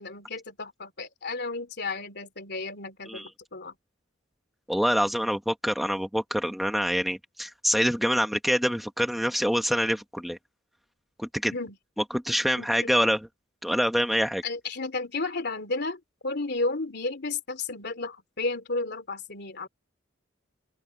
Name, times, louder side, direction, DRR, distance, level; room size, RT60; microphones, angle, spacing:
voice 1, 0.0-3.7 11.5-11.8 12.6-13.0 14.4-19.7, left 3 dB, 60° left, 3.2 m, -33 dB
voice 2, 4.7-10.4 11.2-11.5 12.1-13.3 13.6-14.4, equal, ahead, 1.5 m, -26 dB
open air
head